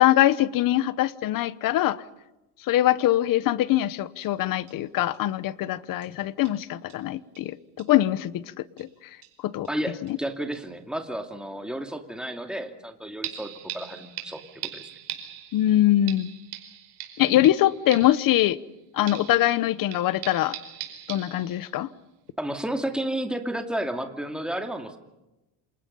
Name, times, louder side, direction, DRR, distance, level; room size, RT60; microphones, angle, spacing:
voice 1, 0.0-2.0 2.6-8.9 9.4-9.7 10.0-10.2 15.5-16.3 17.2-18.6 18.9-20.6 21.1-21.9, left 14 dB, 45° left, 17 dB, 1.0 m, -23 dB
sound 1, 3.8-3.9 4.2-4.3 4.7-4.8 5.1-5.2 6.0-6.1 6.4-6.6 6.9-7.0 7.3-7.5 7.8-8.0 8.8-8.9 9.2-9.8 10.1-10.2 10.5-10.6 13.2-18.8 19.1-21.9 22.3-22.4, right 12 dB, 60° right, 4.7 m, -41 dB
voice 2, 9.7-14.9 22.4-25.0, right 1 dB, ahead, 5 dB, 2.4 m, -32 dB
28.5 x 27.5 x 5.5 m, 0.98 s
cardioid pair, 150°, 45 cm